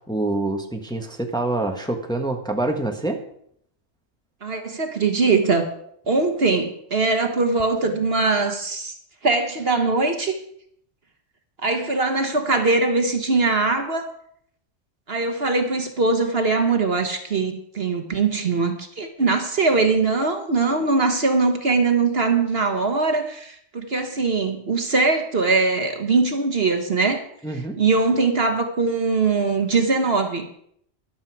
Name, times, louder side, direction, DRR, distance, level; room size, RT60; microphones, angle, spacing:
voice 1, 0.1-3.2 27.4-27.8, right 2 dB, 5° left, 3 dB, 1.3 m, -26 dB
voice 2, 4.4-5.6 6.1-8.9 9.2-10.4 11.6-14.1 15.1-27.2 27.5-30.5, right 3 dB, 50° right, 5 dB, 1.5 m, -21 dB
14.0 x 11.5 x 4.8 m, 0.68 s
omnidirectional pair, 1.4 m